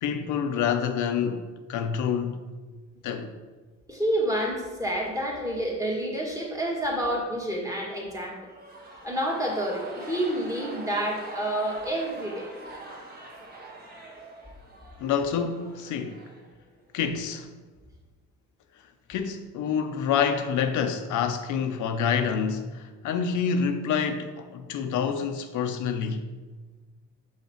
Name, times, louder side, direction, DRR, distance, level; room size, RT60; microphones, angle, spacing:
voice 1, 0.0-1.4 1.7-2.4 3.0-3.3 15.0-16.2 16.9-17.5 19.1-26.3, left 7 dB, 75° left, 0.6 m, -27 dB
voice 2, 3.9-8.4 9.0-12.5, right 1 dB, 10° right, 1.8 m, -28 dB
sound 1, 8.4-16.9, right 2 dB, 30° right, 1.5 m, -44 dB
5.7 x 5.6 x 4.4 m
cardioid pair, 90°, 30 cm